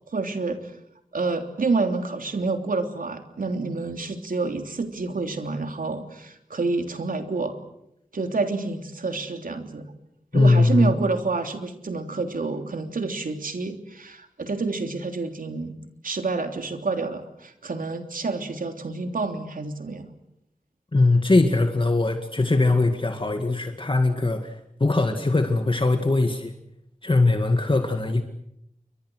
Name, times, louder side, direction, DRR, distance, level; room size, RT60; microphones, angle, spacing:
voice 1, 0.1-0.7 1.1-7.6 8.1-9.9 10.3-15.8 16.0-20.1, right 3 dB, 80° right, 6 dB, 3.3 m, -28 dB
voice 2, 10.3-11.0 20.9-26.5 27.0-28.2, left 2 dB, 35° left, 6 dB, 2.1 m, -21 dB
29.5 x 24.5 x 6.4 m, 0.79 s
wide cardioid pair, 70°, 14 cm